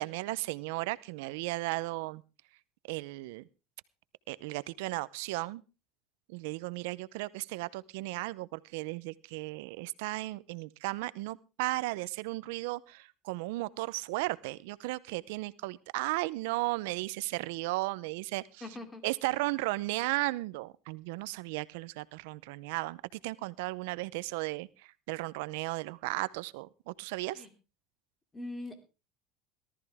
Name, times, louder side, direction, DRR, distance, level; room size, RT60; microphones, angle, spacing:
voice 1, 0.0-2.2 2.9-3.5 4.3-5.6 6.3-18.6 19.0-27.4, right 21 dB, 80° right, 19 dB, 0.7 m, -35 dB
voice 2, 18.6-19.0 27.3-27.5 28.3-28.7, left 2 dB, 15° left, 8 dB, 2.7 m, -41 dB
18.0 x 13.5 x 3.5 m, 0.30 s
supercardioid pair, 130°, 0 cm